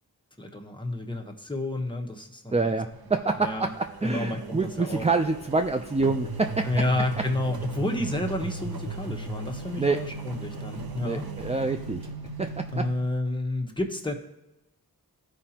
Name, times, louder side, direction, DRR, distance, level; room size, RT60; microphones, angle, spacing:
voice 1, 0.4-2.8 3.4-3.7 4.0-5.1 6.6-11.3 12.7-14.1, left 1 dB, 10° left, 2 dB, 1.1 m, -30 dB
voice 2, 2.5-6.7 9.8-10.0 11.0-12.1 12.4-12.9, right 3 dB, 20° right, 5 dB, 0.4 m, -26 dB
Engine, 2.9-12.9, right 5 dB, 65° right, 0.7 m, -44 dB
sound 1, 6.1-12.9, right 3 dB, 45° right, 2.8 m, -37 dB
14.5 x 5.0 x 2.9 m, 0.96 s
wide cardioid pair, 50°, 38 cm